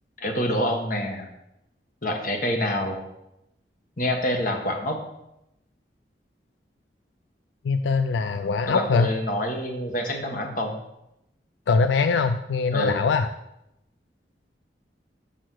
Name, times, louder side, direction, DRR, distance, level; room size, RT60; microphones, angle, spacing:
voice 1, 0.2-1.3 2.0-3.0 4.0-5.0 8.7-10.8 12.7-13.0, equal, 50° left, 3 dB, 1.5 m, -26 dB
voice 2, 7.6-9.1 11.7-13.3, left 4 dB, 85° left, 9 dB, 0.4 m, -22 dB
6.3 x 6.2 x 6.3 m, 0.85 s
head